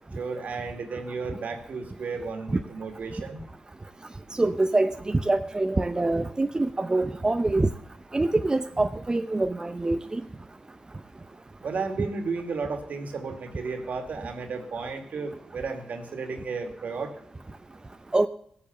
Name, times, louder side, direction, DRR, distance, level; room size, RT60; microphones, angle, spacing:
voice 1, 0.1-3.4 11.6-17.1, right 4 dB, 65° right, 6 dB, 2.4 m, -33 dB
voice 2, 4.4-7.7 8.1-10.2 18.1-18.3, right 2 dB, 25° right, 9 dB, 0.8 m, -25 dB
17.0 x 8.5 x 7.0 m, 0.67 s
supercardioid pair, 40°, 3 cm